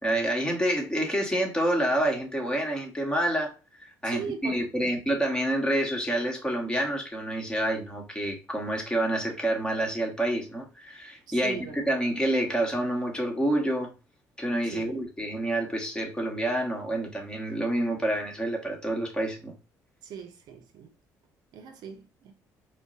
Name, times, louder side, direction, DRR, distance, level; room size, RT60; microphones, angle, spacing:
voice 1, 0.0-3.5 3.8-13.9 14.4-19.5, right 1 dB, 10° left, 1.3 m, -28 dB
voice 2, 4.0-4.9 11.3-11.8 14.7-15.0 20.0-20.9 21.5-22.3, right 7 dB, 70° right, 0.6 m, -39 dB
4.5 x 2.2 x 2.6 m
supercardioid pair, 75°, 7 cm